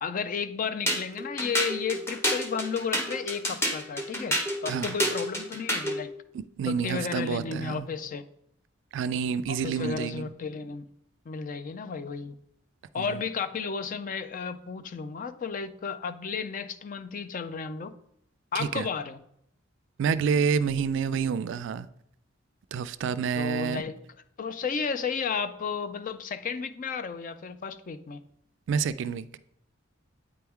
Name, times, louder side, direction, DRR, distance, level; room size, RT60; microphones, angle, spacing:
voice 1, 0.0-6.1 6.7-8.2 9.5-10.9 11.3-12.4 12.9-17.9 18.5-19.2 23.4-24.0 24.4-28.2, left 5 dB, 45° left, 0.4 m, -33 dB
sound 1, 0.9-6.0, equal, 15° left, 1.0 m, -29 dB
voice 2, 6.3-7.9 8.9-10.3 13.0-13.2 18.5-18.9 20.0-21.9 22.7-23.8 28.7-29.4, right 6 dB, 65° right, 0.3 m, -28 dB
8.5 x 4.5 x 3.5 m
head